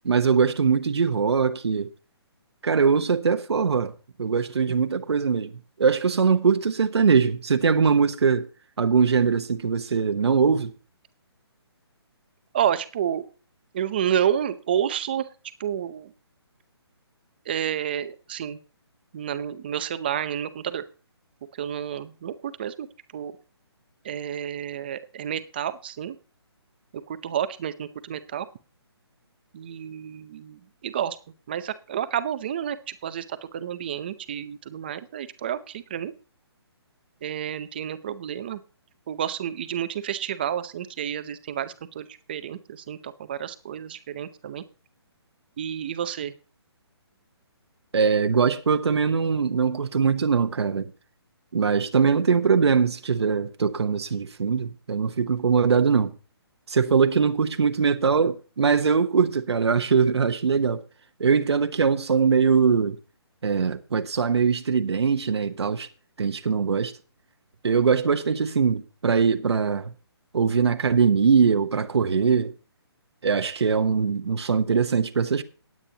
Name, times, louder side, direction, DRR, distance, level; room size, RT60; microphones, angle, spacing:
voice 1, 0.0-1.9 2.6-3.9 4.2-5.5 5.8-8.5 8.8-10.7 47.9-50.9 51.5-56.1 56.7-60.8 61.2-63.0 63.4-65.9 66.2-66.9 67.6-69.9 70.3-72.5 73.2-75.4, right 5 dB, 75° right, 1.0 m, -22 dB
voice 2, 12.5-13.2 13.7-15.3 15.6-16.1 17.5-18.6 19.1-20.8 21.5-22.9 23.1-23.3 24.0-26.2 26.9-28.5 29.5-31.2 31.5-36.1 37.2-38.6 39.1-44.6 45.6-46.3, right 9 dB, 20° right, 0.6 m, -30 dB
18.5 x 8.7 x 2.9 m
hypercardioid pair, 170°, 14 cm